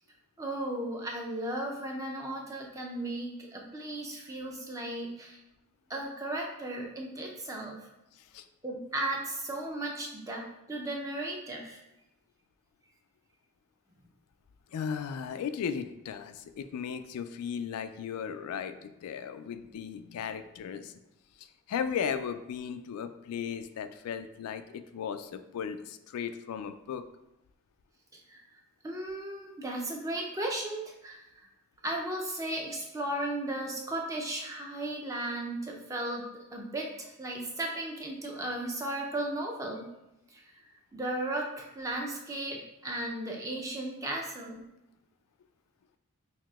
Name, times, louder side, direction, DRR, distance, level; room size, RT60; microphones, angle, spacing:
voice 1, 0.4-5.4 5.9-7.8 8.6-11.8 28.1-28.4 28.8-31.5 31.8-36.2 36.5-39.9 40.3-44.6, right 1 dB, 15° right, 0 dB, 0.5 m, -35 dB
voice 2, 14.7-20.9 21.4-27.0, left 7 dB, 80° left, 12 dB, 0.3 m, -36 dB
5.6 x 2.7 x 2.3 m, 0.90 s
head